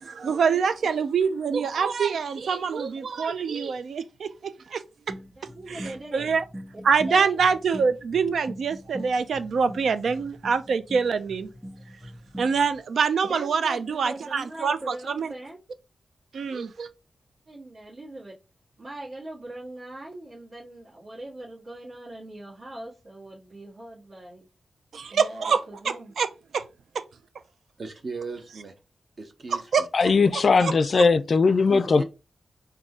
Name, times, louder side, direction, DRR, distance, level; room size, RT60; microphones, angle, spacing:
voice 1, 0.0-4.8 5.7-6.4 6.8-11.5 12.4-15.3 16.3-16.9 24.9-25.6 25.8-26.3 26.5-26.6 29.5-29.9 30.6-30.7, right 5 dB, 80° right, 0.4 m, -25 dB
sound 1, 5.1-12.8, equal, 5° right, 1.1 m, -42 dB
voice 2, 5.3-6.3 6.7-6.8 7.1-7.4 13.2-15.6 17.5-18.4 18.8-24.5 25.1-26.1 31.8-31.9, right 1 dB, 65° right, 1.8 m, -41 dB
voice 3, 27.8-28.7 29.2-29.9 31.7-32.0, right 3 dB, 40° right, 0.7 m, -37 dB
voice 4, 29.9-32.0, left 4 dB, 50° left, 0.3 m, -19 dB
3.9 x 2.7 x 3.6 m
wide cardioid pair, 160°, 0 cm